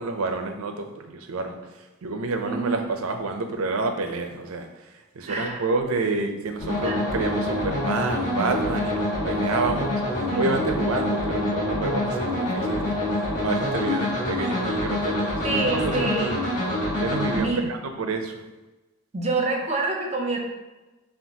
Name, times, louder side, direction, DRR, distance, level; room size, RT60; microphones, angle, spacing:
voice 1, 0.0-1.6 2.0-4.7 5.1-12.9 13.4-16.4 17.0-18.4, right 3 dB, 80° right, 6 dB, 0.5 m, -29 dB
voice 2, 2.4-2.8 5.3-5.6 6.8-7.0 10.3-10.5 15.4-16.3 17.4-17.6 19.1-20.4, right 3 dB, 30° right, 1 dB, 0.6 m, -26 dB
sound 1, 6.6-17.4, left 1 dB, 35° left, 1.4 m, -26 dB
5.6 x 2.4 x 2.8 m, 1.1 s
head